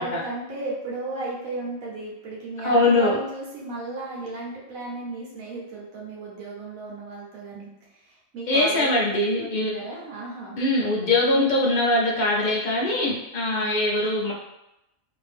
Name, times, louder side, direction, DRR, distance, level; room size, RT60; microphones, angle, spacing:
voice 1, 0.0-8.9 9.4-10.6 13.5-13.7, right 2 dB, 80° right, -4 dB, 1.3 m, -35 dB
voice 2, 2.6-3.2 8.5-9.7 10.6-14.3, left 2 dB, 65° left, -2 dB, 0.4 m, -22 dB
2.8 x 2.6 x 3.3 m, 0.89 s
omnidirectional pair, 1.4 m